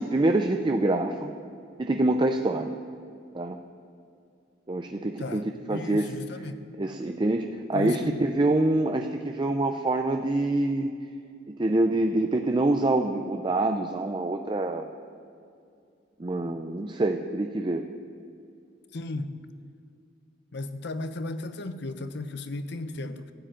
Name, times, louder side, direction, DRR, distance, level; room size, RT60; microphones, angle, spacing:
voice 1, 0.0-1.3 1.8-2.7 3.3-3.6 4.7-6.1 6.8-10.9 11.6-14.9 16.2-17.9, right 2 dB, 25° right, 5 dB, 0.5 m, -26 dB
voice 2, 5.2-6.6 7.7-8.1 18.9-19.4 20.5-23.3, left 2 dB, 65° left, 10 dB, 0.7 m, -35 dB
13.0 x 7.6 x 9.0 m, 2.4 s
head